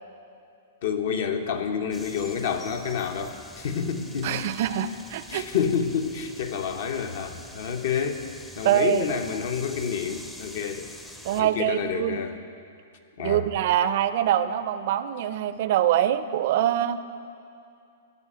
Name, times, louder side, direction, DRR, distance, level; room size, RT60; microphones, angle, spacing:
voice 1, 0.8-4.4 5.3-8.2 8.5-10.9 11.4-12.4 13.2-13.5, left 7 dB, 65° left, 7 dB, 0.9 m, -29 dB
sound 1, 1.9-11.4, left 1 dB, 5° left, 0.5 m, -45 dB
voice 2, 4.2-5.4 8.6-9.0 11.2-12.2 13.2-17.0, right 11 dB, 55° right, 13 dB, 0.4 m, -24 dB
15.0 x 5.3 x 5.6 m, 2.5 s
hypercardioid pair, 145°, 0 cm